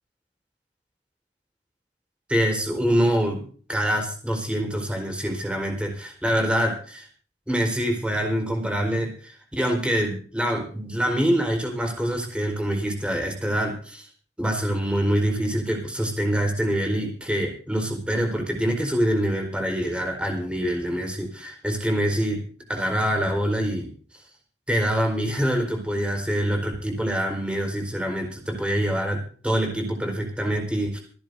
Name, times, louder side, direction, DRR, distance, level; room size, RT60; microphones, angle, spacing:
voice 1, 2.3-3.4 3.7-7.1 7.5-14.1 14.4-22.4 22.7-23.9 24.7-31.0, equal, 5° right, 2 dB, 4.4 m, -25 dB
27.5 x 12.0 x 2.7 m, 0.44 s
head